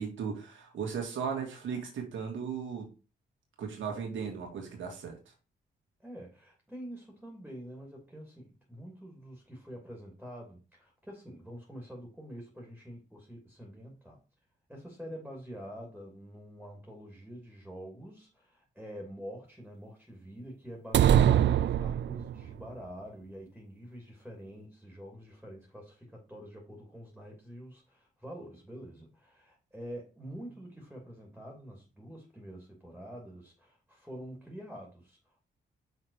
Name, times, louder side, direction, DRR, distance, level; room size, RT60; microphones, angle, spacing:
voice 1, 0.0-2.9 3.6-5.2, right 6 dB, 85° right, 2.1 m, -36 dB
voice 2, 6.0-14.2 14.7-35.6, equal, ahead, 2.9 m, -46 dB
sound 1, 20.9-22.5, right 10 dB, 65° right, 0.4 m, -23 dB
6.0 x 4.2 x 4.8 m
cardioid pair, 60°, 20 cm